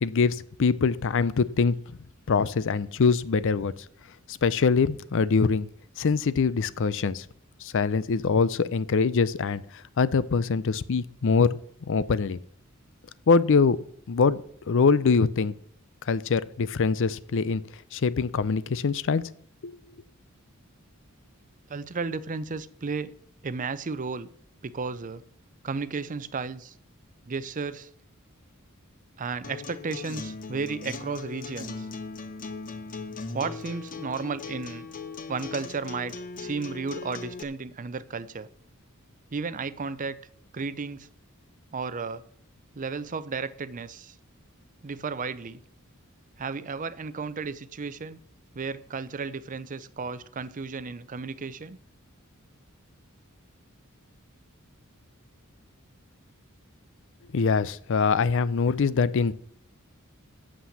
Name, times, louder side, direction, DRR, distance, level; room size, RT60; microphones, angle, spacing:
voice 1, 0.0-1.7 2.3-3.7 4.3-5.7 6.0-7.2 7.6-9.6 10.0-11.5 11.9-12.4 13.3-13.8 14.1-14.4 14.7-15.5 16.1-17.6 17.9-19.2 19.6-19.7 57.3-59.3, left 5 dB, 65° left, 17 dB, 0.5 m, -23 dB
voice 2, 21.7-23.1 23.4-24.3 24.6-25.2 25.6-26.7 27.2-27.9 29.2-31.9 33.3-34.9 35.3-38.5 39.3-40.2 40.5-41.1 41.7-42.2 42.7-44.2 44.8-45.6 46.4-48.2 48.5-51.8, right 4 dB, 40° right, 15 dB, 0.5 m, -33 dB
Acoustic guitar, 29.4-37.4, left 4 dB, 40° left, 0.8 m, -39 dB
8.6 x 7.5 x 7.2 m, 0.63 s
head